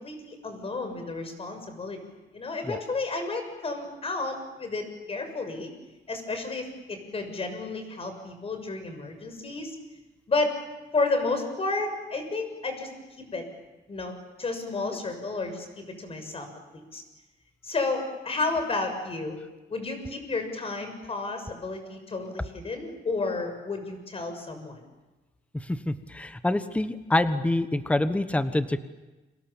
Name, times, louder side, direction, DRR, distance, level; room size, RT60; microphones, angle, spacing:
voice 1, 0.0-2.0 2.3-5.7 6.1-9.8 10.3-10.5 10.9-12.9 13.2-13.4 13.9-16.5 16.7-17.0 17.6-19.4 19.7-24.8, left 3 dB, 30° left, 6 dB, 6.6 m, -31 dB
voice 2, 25.5-28.8, left 1 dB, 5° left, 11 dB, 1.2 m, -26 dB
29.5 x 26.5 x 7.3 m, 1.1 s
cardioid pair, 130°, 18 cm